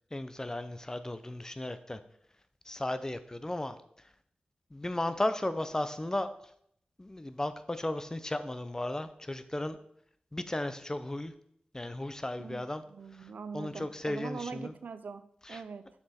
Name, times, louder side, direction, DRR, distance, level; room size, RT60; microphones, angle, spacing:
voice 1, 0.1-2.0 2.7-3.8 4.7-6.3 7.0-9.8 10.3-11.3 11.7-12.8 13.2-14.7 15.4-15.6, left 1 dB, 20° left, 11 dB, 0.7 m, -35 dB
voice 2, 12.4-15.9, right 5 dB, 90° right, 12 dB, 0.5 m, -42 dB
7.9 x 5.9 x 4.3 m, 0.68 s
wide cardioid pair, 75°, 3 cm